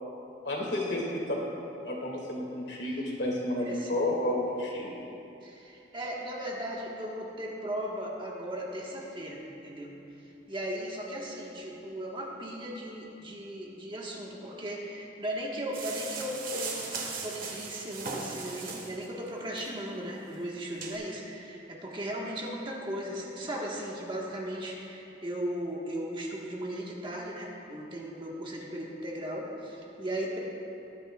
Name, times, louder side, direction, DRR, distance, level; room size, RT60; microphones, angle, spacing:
voice 1, 0.4-1.4 1.8-4.9, left 1 dB, 70° left, -2 dB, 2.4 m, -31 dB
voice 2, 3.6-4.1 5.4-9.9 10.2-17.0 17.2-30.4, equal, 30° right, -3 dB, 1.4 m, -37 dB
sound 1, 15.7-19.1 19.5-19.7 20.2-20.3 20.8-20.9, right 4 dB, 50° right, 1.5 m, -38 dB
21.0 x 10.0 x 2.4 m, 2.9 s
head